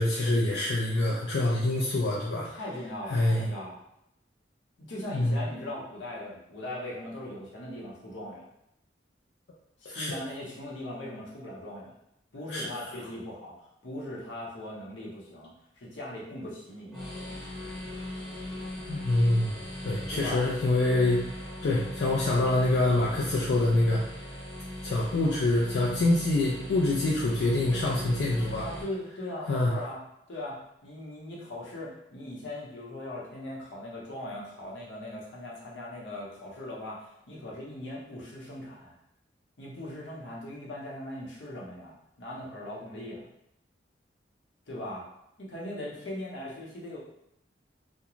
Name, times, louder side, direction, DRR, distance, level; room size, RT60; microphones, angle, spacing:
voice 1, 0.0-2.5 3.1-3.5 5.1-5.4 9.9-10.2 12.5-12.9 18.9-19.6 19.8-21.2 21.6-24.0 24.8-28.6 29.5-29.7, left 2 dB, 65° left, -5 dB, 0.4 m, -25 dB
voice 2, 2.3-3.8 4.8-8.4 9.8-12.0 12.3-17.0 20.1-20.4 28.6-30.0 30.3-39.0 39.6-43.3 44.7-45.1 45.4-47.0, left 1 dB, 85° left, -5 dB, 0.8 m, -39 dB
sound 1, 16.9-28.8, left 1 dB, 5° left, 1.1 m, -39 dB
2.4 x 2.2 x 3.0 m, 0.78 s
head